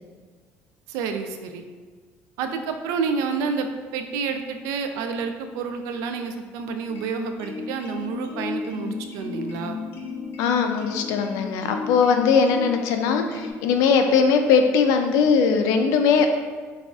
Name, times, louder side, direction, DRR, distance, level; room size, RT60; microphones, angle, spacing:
voice 1, 0.9-1.6 2.4-9.8, right 5 dB, 90° right, 6 dB, 0.4 m, -29 dB
sound 1, 6.9-13.5, left 5 dB, 50° left, 0.7 m, -34 dB
voice 2, 10.4-16.3, left 5 dB, 85° left, 5 dB, 0.4 m, -20 dB
5.9 x 2.4 x 2.4 m, 1.5 s
cardioid pair, 140°, 5 cm